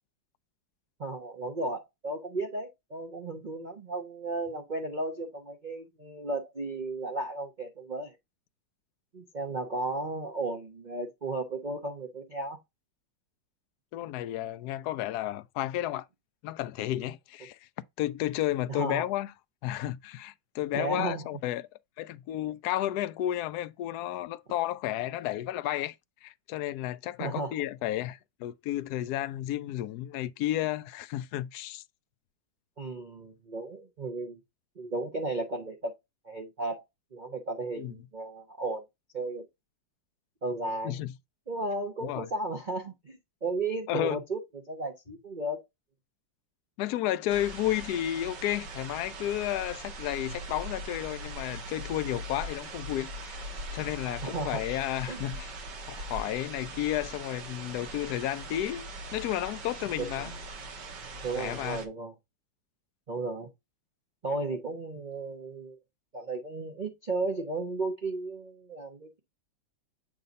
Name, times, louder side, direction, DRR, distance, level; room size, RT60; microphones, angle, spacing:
voice 1, 1.0-8.2 9.1-12.6 18.7-19.0 20.7-21.3 27.2-27.5 32.8-34.4 34.8-35.9 36.2-36.8 37.1-38.8 39.1-39.4 40.4-41.0 41.5-45.6 54.2-54.6 55.1-55.2 60.0-60.3 61.2-62.1 63.1-63.5 64.2-65.8 66.1-69.2, right 2 dB, 45° right, 0.6 m, -34 dB
voice 2, 13.9-16.1 16.4-17.6 18.0-19.3 19.6-21.7 22.0-25.9 26.2-31.8 37.8-37.9 40.8-41.1 42.0-42.3 43.9-44.2 46.8-55.5 55.9-60.3 61.4-61.8, left 13 dB, 70° left, 0.9 m, -32 dB
sound 1, 47.3-61.9, right 1 dB, 70° right, 1.9 m, -41 dB
7.5 x 2.6 x 5.2 m
omnidirectional pair, 2.0 m